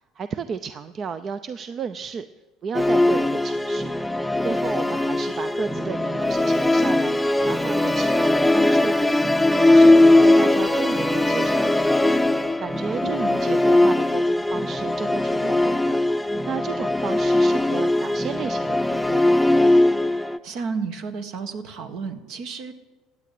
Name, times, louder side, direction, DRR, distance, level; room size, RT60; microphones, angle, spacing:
voice 1, 0.2-2.3 2.6-3.9 4.4-7.2 7.4-9.2 9.5-12.1 12.6-16.0 16.4-19.5, right 6 dB, 45° right, 12 dB, 0.6 m, -33 dB
Musical instrument, 2.7-20.4, left 1 dB, 5° left, 0.7 m, -20 dB
voice 2, 13.0-13.4 20.0-22.7, right 5 dB, 65° right, 8 dB, 1.5 m, -32 dB
14.5 x 9.0 x 8.4 m, 1.2 s
hypercardioid pair, 75°, 0 cm